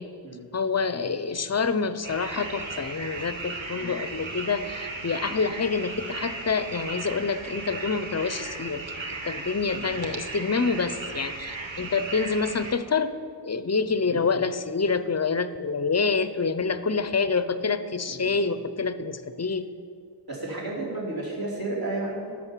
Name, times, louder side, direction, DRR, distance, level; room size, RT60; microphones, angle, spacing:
voice 1, 0.5-9.0 9.2-13.1 13.4-19.7, left 4 dB, 35° left, 12 dB, 0.5 m, -27 dB
sound 1, 2.0-12.7, right 3 dB, 85° right, 1.1 m, -36 dB
voice 2, 20.3-22.4, right 2 dB, 50° right, -5 dB, 3.3 m, -32 dB
10.5 x 6.4 x 7.3 m, 2.2 s
wide cardioid pair, 50°, 45 cm